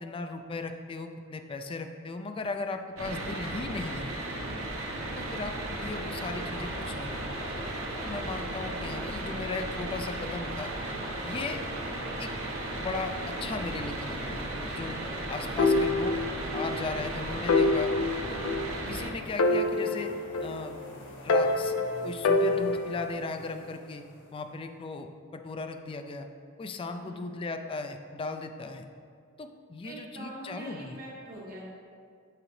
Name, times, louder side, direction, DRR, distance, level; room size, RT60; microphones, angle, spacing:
voice 1, 0.0-4.1 5.2-7.3 8.0-10.7 11.2-11.6 12.2-12.3 12.8-15.0 15.3-16.2 16.5-17.9 18.3-18.4 18.9-20.1 20.4-20.7 21.2-21.7 22.0-24.0 24.3-26.3 26.6-28.9 29.4-31.0, left 3 dB, 25° left, 7 dB, 0.3 m, -37 dB
sound 1, 3.0-19.1, right 1 dB, 80° right, 1.0 m, -35 dB
sound 2, 15.6-16.8 17.0-17.1 17.5-19.0 19.4-20.8 21.3-23.1, left 2 dB, 90° left, 0.4 m, -26 dB
sound 3, 19.2-24.7, left 1 dB, 60° left, 1.0 m, -48 dB
voice 2, 27.0-27.4 29.8-31.7, right 1 dB, 45° right, -5 dB, 1.5 m, -43 dB
7.5 x 4.9 x 3.2 m, 2.2 s
head